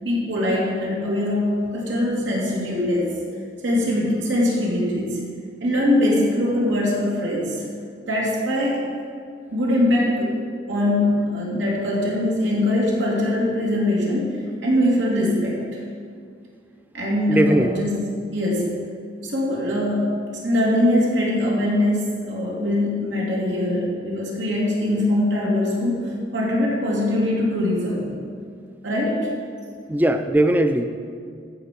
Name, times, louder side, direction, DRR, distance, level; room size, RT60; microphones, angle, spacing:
voice 1, 0.0-3.1 3.6-5.2 5.6-7.5 8.1-8.8 9.5-10.3 10.7-15.6 16.9-18.0 18.3-18.7 19.2-20.2 20.4-26.0 26.3-28.0 28.8-29.3, left 1 dB, 90° right, -4 dB, 2.8 m, -22 dB
voice 2, 17.3-17.9 29.9-30.9, right 1 dB, 10° right, 8 dB, 0.4 m, -19 dB
14.5 x 5.4 x 5.3 m, 2.2 s
head